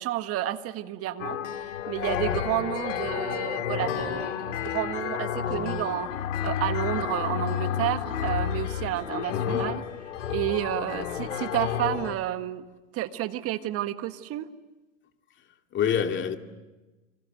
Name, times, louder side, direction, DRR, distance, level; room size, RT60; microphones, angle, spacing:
voice 1, 0.0-1.4 1.9-6.2 6.4-9.8 10.3-12.6 12.9-14.5, right 13 dB, 35° right, 1.6 m, -30 dB
sound 1, 1.2-12.2, left 9 dB, 70° left, 2.4 m, -30 dB
voice 2, 9.3-9.8 15.7-16.4, left 8 dB, 30° left, 2.4 m, -27 dB
28.5 x 26.0 x 8.0 m
hypercardioid pair, 100°, 38 cm